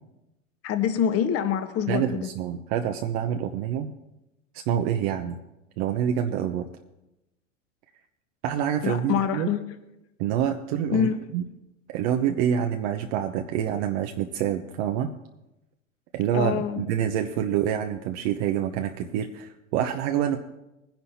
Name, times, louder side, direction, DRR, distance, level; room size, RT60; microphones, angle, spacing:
voice 1, 0.6-2.3 8.8-9.6 10.9-11.2 16.3-16.8, left 8 dB, 35° left, 1.4 m, -25 dB
voice 2, 1.9-3.9 4.5-5.4 5.8-6.7 8.4-9.5 10.2-11.1 11.3-11.4 11.9-15.1 16.1-20.4, right 9 dB, 50° right, 1.0 m, -26 dB
20.5 x 10.5 x 2.8 m
hypercardioid pair, 90°, 39 cm